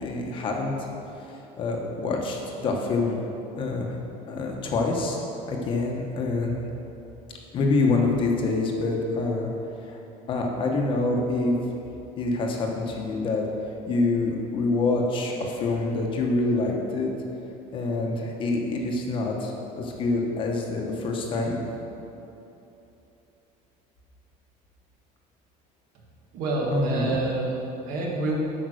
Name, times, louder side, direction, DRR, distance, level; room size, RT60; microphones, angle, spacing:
voice 1, 0.0-0.9 1.3-3.2 3.6-4.0 4.3-5.2 5.5-6.6 7.5-9.5 9.8-10.0 10.3-11.6 12.2-13.5 13.8-17.1 17.7-21.6 26.7-27.1, left 3 dB, 30° left, 1 dB, 1.1 m, -26 dB
voice 2, 26.3-28.4, right 2 dB, 60° right, -2 dB, 1.8 m, -28 dB
8.4 x 5.8 x 6.3 m, 2.9 s
cardioid pair, 175°, 16 cm